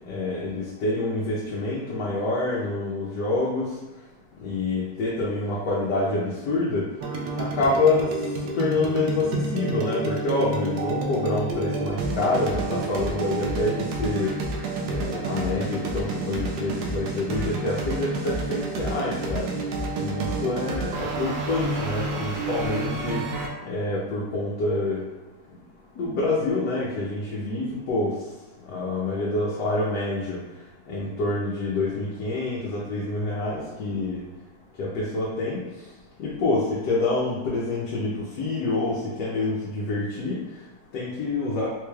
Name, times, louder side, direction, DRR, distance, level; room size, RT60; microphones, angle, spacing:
voice 1, 0.1-3.6 4.4-6.9 7.4-8.2 8.5-14.3 14.9-19.5 20.0-23.2 23.7-25.0 26.0-28.2 28.7-30.4 30.9-34.2 34.8-35.6 36.2-40.4 40.9-41.7, left 2 dB, 75° left, -6 dB, 1.3 m, -27 dB
sound 1, 7.0-23.5, right 2 dB, 75° right, 1.1 m, -29 dB
4.0 x 3.1 x 2.3 m, 1.1 s
omnidirectional pair, 1.8 m